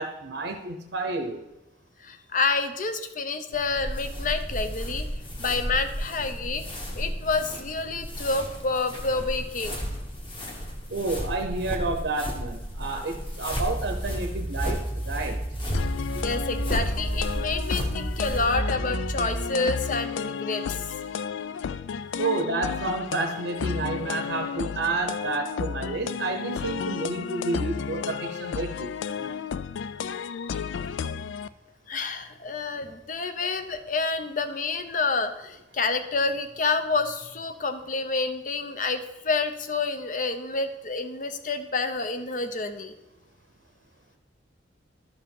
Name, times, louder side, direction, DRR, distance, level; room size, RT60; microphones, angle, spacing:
voice 1, 0.0-1.4 10.9-15.4 16.1-16.2 22.2-28.9 29.2-29.3, right 2 dB, 70° right, 5 dB, 0.8 m, -30 dB
voice 2, 2.0-5.1 5.4-9.8 16.2-20.8 31.9-42.9, left 3 dB, 45° left, 9 dB, 0.7 m, -28 dB
sound 1, 3.5-18.6, equal, 25° left, 1.4 m, -34 dB
sound 2, 13.5-19.5, right 1 dB, 10° right, 0.3 m, -32 dB
sound 3, 15.7-31.5, left 6 dB, 85° left, 0.3 m, -33 dB
12.0 x 5.0 x 5.4 m, 0.97 s
head